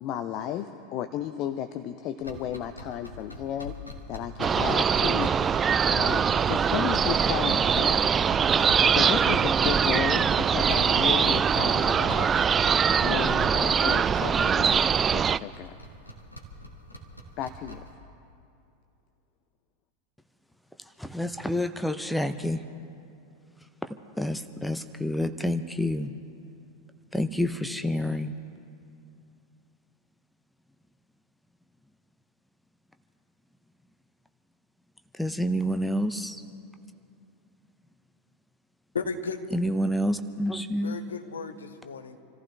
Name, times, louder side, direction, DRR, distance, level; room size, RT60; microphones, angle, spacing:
voice 1, 0.0-3.8 4.1-5.4 5.9-8.1 8.8-12.3 13.0-15.7 17.4-17.8, left 10 dB, 40° left, 9 dB, 0.6 m, -33 dB
sound 1, 2.2-17.9, left 1 dB, 85° left, 1.6 m, -44 dB
sound 2, 4.4-15.4, right 7 dB, 25° right, 0.3 m, -23 dB
voice 2, 20.8-22.6 23.6-26.1 27.1-28.3 35.1-36.4 39.5-41.0, equal, 5° left, 9 dB, 0.7 m, -29 dB
voice 3, 38.9-39.5 40.8-42.2, left 4 dB, 70° left, 7 dB, 1.1 m, -34 dB
27.5 x 14.5 x 3.4 m, 2.5 s
figure-of-eight pair, 85°, 0 cm